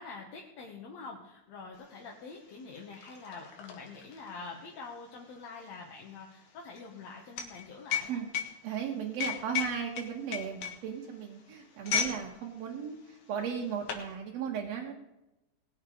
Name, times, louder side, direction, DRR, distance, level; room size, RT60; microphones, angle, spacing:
voice 1, 0.0-8.2, left 4 dB, 65° left, -1 dB, 2.5 m, -46 dB
sound 1, 1.9-2.0 2.3-12.2 12.5-12.8 13.4-14.1, left 8 dB, 85° left, 3.1 m, -36 dB
voice 2, 8.6-14.9, right 7 dB, 65° right, -2 dB, 2.3 m, -36 dB
19.5 x 7.4 x 5.0 m, 0.93 s
omnidirectional pair, 3.4 m